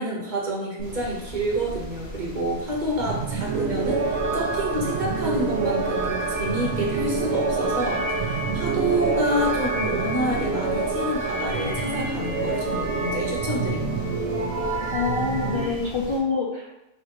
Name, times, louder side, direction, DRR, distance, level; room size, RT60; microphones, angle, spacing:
voice 1, 0.0-14.0, equal, 50° right, -2 dB, 1.1 m, -28 dB
sound 1, 0.8-16.2, right 1 dB, 90° left, 1.6 m, -39 dB
sound 2, 2.9-15.7, right 4 dB, 90° right, 0.9 m, -27 dB
voice 2, 14.9-16.9, left 4 dB, 40° left, -3 dB, 0.4 m, -26 dB
3.9 x 2.9 x 4.6 m, 0.92 s
omnidirectional pair, 1.0 m